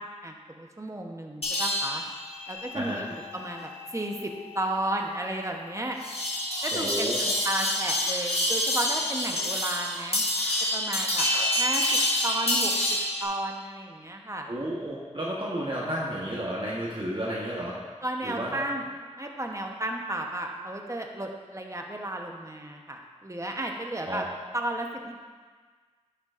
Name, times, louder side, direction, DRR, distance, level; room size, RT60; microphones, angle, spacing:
voice 1, 0.0-2.0 2.5-6.0 6.6-10.2 10.7-11.3 11.6-11.8 12.2-12.7 13.2-14.5 18.0-18.8 19.2-24.2 24.5-25.1, right 1 dB, 25° right, 2 dB, 0.9 m, -33 dB
sound 1, 1.4-13.2, left 1 dB, 55° left, 1.7 m, -28 dB
voice 2, 2.7-3.1 6.7-7.2 11.3-11.4 14.5-17.8 18.2-18.7 24.0-24.2, right 1 dB, 45° right, -6 dB, 1.2 m, -32 dB
10.0 x 6.7 x 2.5 m, 1.5 s
wide cardioid pair, 45°, 12 cm